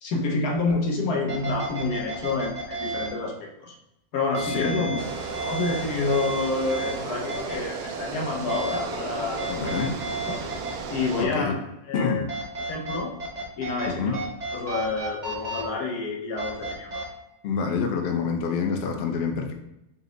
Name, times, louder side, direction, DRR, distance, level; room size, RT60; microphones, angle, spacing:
voice 1, 0.0-3.8 4.1-5.0 5.3-9.9 10.3-10.5 10.9-11.5 11.9-12.3 12.6-13.1 13.6-14.2 14.5-17.0, left 3 dB, 85° left, 0 dB, 1.4 m, -28 dB
sound 1, 0.7-0.8 1.3-3.1 4.3-6.9 7.3-7.5 8.5-9.0 9.4-10.7 12.3-13.9 14.1-15.6 16.4-17.0, right 3 dB, 40° right, 0.6 m, -33 dB
voice 2, 4.4-5.0 9.5-10.0 11.2-11.5 11.9-12.3 13.9-14.2 17.4-19.5, left 5 dB, 60° left, 4 dB, 0.6 m, -27 dB
sound 2, 5.0-11.3, right 5 dB, 75° right, 1.0 m, -34 dB
5.2 x 2.1 x 3.8 m, 0.88 s
omnidirectional pair, 1.6 m